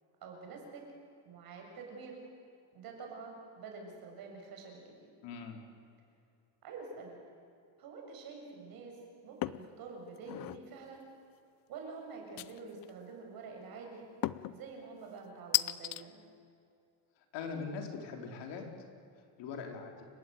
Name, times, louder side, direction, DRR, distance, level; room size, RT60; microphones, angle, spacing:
voice 1, 0.2-0.8 1.2-2.2 2.7-5.1 6.6-7.2 7.8-9.0 9.2-11.0 11.7-14.1 14.5-16.2, right 4 dB, 50° right, 1 dB, 6.7 m, -47 dB
voice 2, 5.2-5.6 17.3-18.7 19.4-20.1, left 5 dB, 70° left, 3 dB, 4.2 m, -41 dB
sound 1, 9.4-9.7 10.2-10.6 12.4-12.9 14.2-14.6 15.5-16.0, left 16 dB, 50° left, 0.7 m, -34 dB
29.0 x 16.5 x 9.4 m, 2.5 s
cardioid pair, 165°, 45 cm